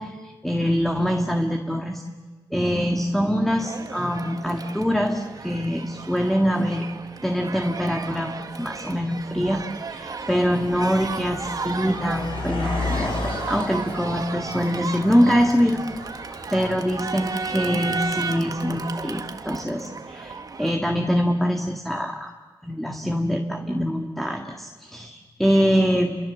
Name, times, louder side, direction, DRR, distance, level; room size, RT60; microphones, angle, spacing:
voice 1, 0.0-2.0 2.5-6.8 7.2-15.8 16.5-22.3 22.6-26.2, equal, ahead, 3 dB, 1.9 m, -24 dB
Crowd, 3.6-20.7, right 4 dB, 45° right, 1.5 m, -34 dB
Car passing by, 7.8-7.9 8.7-8.9 9.2-19.6, left 3 dB, 75° left, 5.8 m, -35 dB
30.0 x 24.0 x 7.3 m, 1.4 s
cardioid pair, 95°, 9 cm